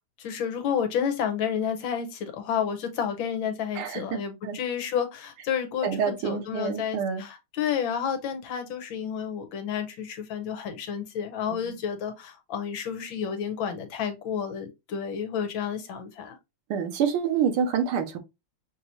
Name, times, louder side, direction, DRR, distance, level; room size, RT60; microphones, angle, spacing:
voice 1, 0.2-16.4, left 8 dB, 70° left, 1.6 m, -30 dB
voice 2, 3.8-4.6 5.8-7.2 11.5-11.7 16.7-18.2, right 7 dB, 85° right, 1.8 m, -27 dB
5.9 x 2.9 x 2.6 m
omnidirectional pair, 2.3 m